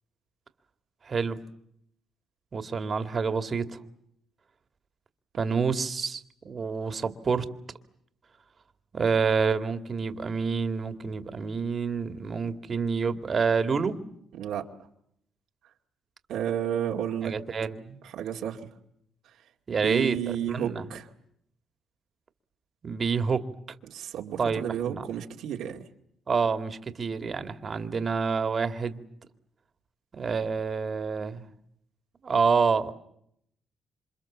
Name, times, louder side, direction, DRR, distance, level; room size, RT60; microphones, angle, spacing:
voice 1, 1.1-1.4 2.5-3.8 5.4-7.5 8.9-14.0 17.2-18.0 19.7-20.8 22.8-23.5 24.4-25.0 26.3-29.0 30.1-31.4 32.2-32.9, right 5 dB, 40° right, 9 dB, 2.3 m, -28 dB
voice 2, 14.3-14.6 16.3-17.3 18.0-18.6 19.7-21.1 23.9-25.8, right 10 dB, 80° right, 1 dB, 2.3 m, -31 dB
27.5 x 26.5 x 7.4 m, 0.73 s
cardioid pair, 90°, 0 cm